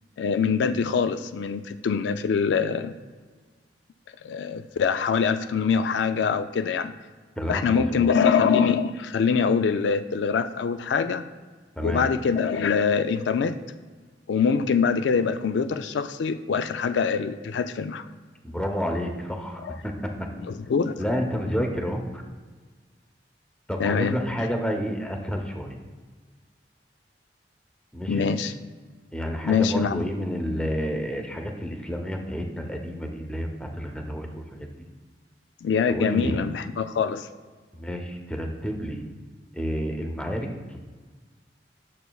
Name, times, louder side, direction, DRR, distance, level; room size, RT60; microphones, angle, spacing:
voice 1, 0.2-2.9 4.2-6.9 7.5-11.2 11.8-13.6 14.3-18.0 19.6-19.8 20.5-20.9 23.8-24.2 28.1-28.5 29.4-30.0 35.6-37.3, left 6 dB, 85° left, 10 dB, 0.3 m, -24 dB
voice 2, 7.4-8.1 11.8-12.0 18.4-20.1 21.0-22.2 23.7-25.8 27.9-28.3 29.1-34.7 35.9-36.4 37.7-39.0 39.5-40.8, equal, 5° left, 3 dB, 0.7 m, -30 dB
11.0 x 6.6 x 2.3 m, 1.5 s
head